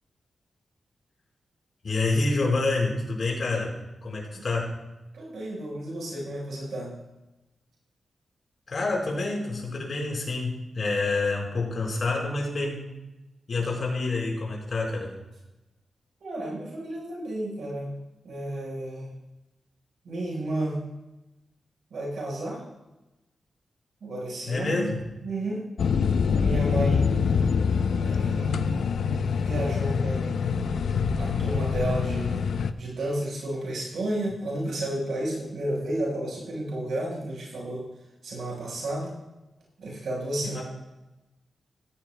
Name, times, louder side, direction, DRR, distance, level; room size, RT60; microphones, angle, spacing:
voice 1, 1.8-3.8 4.0-4.8 8.7-12.9 13.5-15.1 24.5-25.0 40.4-40.6, left 3 dB, 55° left, -2 dB, 4.6 m, -27 dB
voice 2, 5.1-6.9 16.2-17.9 18.2-19.1 20.0-20.8 21.9-22.6 24.0-24.9 25.2-25.6 26.3-27.1 28.0-28.5 29.4-30.4 31.2-32.4 32.8-37.8 38.2-39.1 39.8-40.6, right 1 dB, 90° right, -4 dB, 4.8 m, -32 dB
sound 1, 25.8-32.7, left 6 dB, 85° left, 0.5 m, -25 dB
16.0 x 14.5 x 2.3 m, 1.0 s
wide cardioid pair, 120°, 0 cm